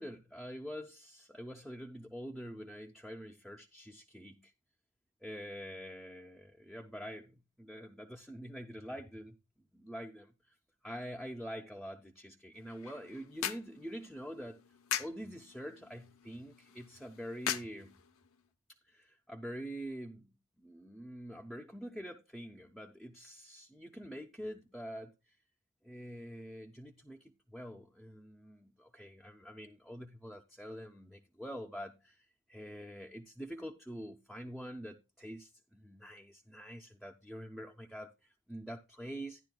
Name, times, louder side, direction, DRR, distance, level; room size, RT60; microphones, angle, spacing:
voice 1, 0.0-4.5 5.2-9.4 9.7-10.5 10.8-14.6 15.0-17.9 18.9-25.4 25.8-39.4, equal, ahead, 0.5 m, -46 dB
sound 1, 12.5-18.5, left 9 dB, 65° left, 0.7 m, -42 dB
12.0 x 10.5 x 2.2 m
head